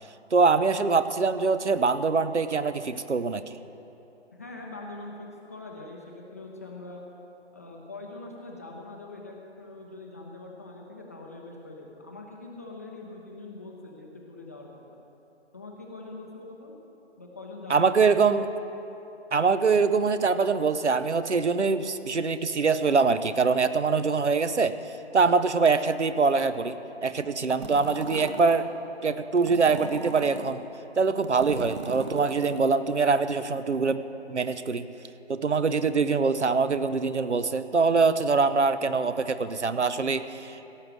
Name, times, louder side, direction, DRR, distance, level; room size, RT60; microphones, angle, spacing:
voice 1, 0.3-3.6 17.7-18.5 19.3-26.7 27.0-28.7 29.0-30.6 30.9-34.9 35.3-40.6, right 4 dB, 85° right, 12 dB, 0.7 m, -24 dB
voice 2, 4.3-7.0 7.5-14.8 15.5-16.7 17.2-18.0, left 2 dB, 15° left, -1 dB, 0.6 m, -43 dB
sound 1, 27.5-28.6 29.4-30.5 31.1-32.6, right 2 dB, 25° right, 0.7 m, -38 dB
16.5 x 6.5 x 7.5 m, 3.0 s
figure-of-eight pair, 145°, 34 cm